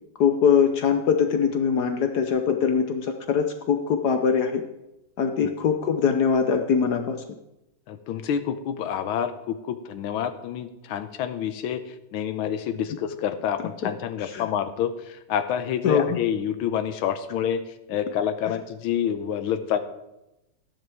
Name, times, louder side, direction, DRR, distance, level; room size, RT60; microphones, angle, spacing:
voice 1, 0.2-4.6 5.2-7.2 13.8-13.9 14.2-14.5 15.8-16.2, left 6 dB, 65° left, 7 dB, 1.1 m, -22 dB
voice 2, 7.9-11.8 12.1-17.6 17.9-19.8, left 9 dB, 85° left, 10 dB, 1.6 m, -28 dB
13.0 x 11.0 x 3.5 m, 0.91 s
omnidirectional pair, 2.2 m